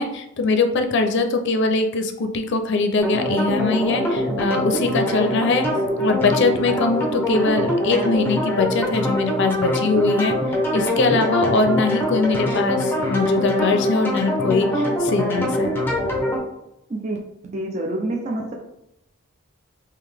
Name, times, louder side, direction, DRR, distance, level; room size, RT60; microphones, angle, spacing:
voice 1, 0.0-5.7 6.0-10.3 10.7-15.8, left 3 dB, 55° left, 6 dB, 0.5 m, -22 dB
sound 1, 3.0-16.4, equal, 10° left, 0.7 m, -23 dB
voice 2, 17.5-18.5, right 1 dB, 35° right, 1 dB, 0.5 m, -27 dB
3.7 x 2.8 x 3.3 m, 0.85 s
head